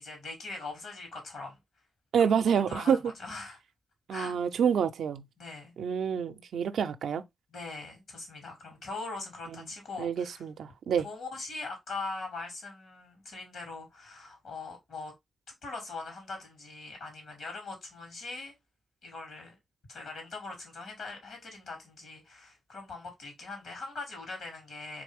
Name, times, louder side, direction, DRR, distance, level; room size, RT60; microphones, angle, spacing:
voice 1, 0.0-1.6 2.5-3.6 4.1-4.4 5.4-5.7 7.5-10.5 11.0-15.1 15.6-18.5 19.0-19.6 19.9-25.0, left 3 dB, 75° left, 2.5 m, -41 dB
voice 2, 2.1-3.0 4.1-5.2 5.8-7.2 9.5-9.6 10.0-11.1, right 7 dB, 80° right, 0.4 m, -27 dB
3.7 x 3.2 x 3.4 m
cardioid pair, 55°, 0 cm